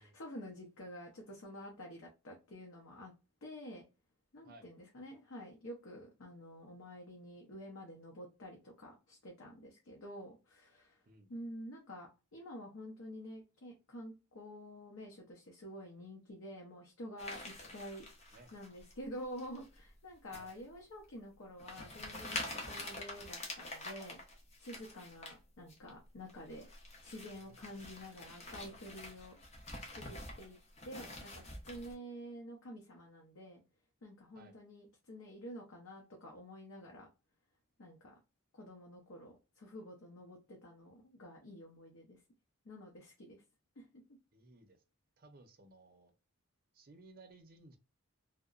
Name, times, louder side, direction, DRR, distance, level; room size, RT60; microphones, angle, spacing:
voice 1, 0.0-3.1 3.4-3.8 4.3-11.0 11.3-18.0 18.5-24.2 24.6-26.7 27.0-29.3 29.9-30.6 30.8-33.6 34.0-37.1 37.8-38.2 38.5-42.2 42.6-43.4 43.8-43.9, equal, 85° left, 0 dB, 0.6 m, -49 dB
sound 1, 17.2-18.9 19.4-19.8 20.3-20.6 21.0-21.1 21.6-25.4 25.7-25.9 26.3-31.9, left 2 dB, 30° left, 0.7 m, -46 dB
voice 2, 27.3-27.6 34.3-34.6 44.3-44.8 45.2-46.1 46.7-47.8, right 2 dB, 45° right, 5 dB, 0.5 m, -59 dB
2.8 x 2.1 x 2.4 m, 0.29 s
head